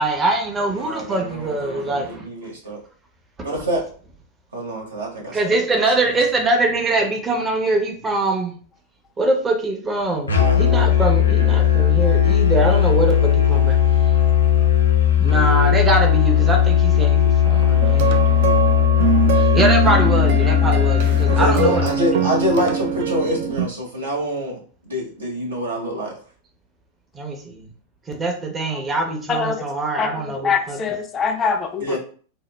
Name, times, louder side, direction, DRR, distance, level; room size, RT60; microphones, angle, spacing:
voice 1, 0.0-2.3 5.3-8.6 9.2-13.8 14.1-14.2 15.2-18.7 19.3-21.9 27.1-27.7 28.1-30.8, right 2 dB, 20° right, 2 dB, 0.7 m, -23 dB
voice 2, 0.6-2.8 3.4-3.8 4.5-5.4 5.7-5.8 21.3-26.1 31.8-32.0, equal, 70° right, -1 dB, 1.0 m, -25 dB
Musical instrument, 10.3-22.0, left 10 dB, 80° left, 0.5 m, -17 dB
sound 1, 17.8-23.6, right 7 dB, 55° right, 0.4 m, -23 dB
voice 3, 29.3-29.6 30.0-30.1 30.4-32.0, left 6 dB, 25° left, 5 dB, 0.4 m, -23 dB
2.7 x 2.0 x 3.2 m, 0.44 s
figure-of-eight pair, 90°, 0 cm